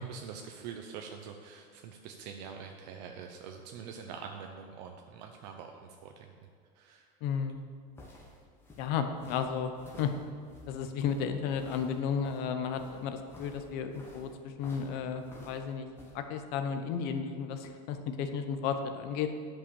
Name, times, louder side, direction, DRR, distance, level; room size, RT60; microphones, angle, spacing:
voice 1, 0.0-6.5 6.7-7.1, right 6 dB, 80° right, 3 dB, 0.8 m, -45 dB
voice 2, 7.2-7.6 8.8-9.7 10.0-10.1 10.7-15.9 16.1-19.3, left 7 dB, 50° left, 7 dB, 0.9 m, -33 dB
sound 1, 7.5-16.2, left 1 dB, 10° left, 1.1 m, -53 dB
10.0 x 5.6 x 6.9 m, 2.2 s
cardioid pair, 175°, 21 cm